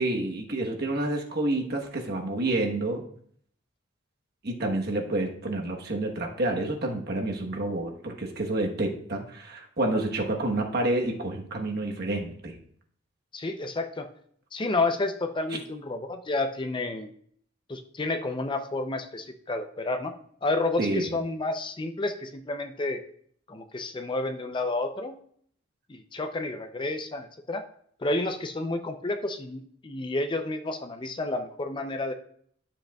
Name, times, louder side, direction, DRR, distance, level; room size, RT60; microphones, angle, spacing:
voice 1, 0.0-3.0 4.4-12.6 20.8-21.2, right 2 dB, 55° right, 2 dB, 1.1 m, -29 dB
voice 2, 13.3-14.1 14.5-17.1 17.7-20.1 20.4-23.0 23.5-25.2 25.9-27.6 28.0-32.1, left 2 dB, 25° left, 7 dB, 0.5 m, -30 dB
11.5 x 7.5 x 2.3 m, 0.63 s
head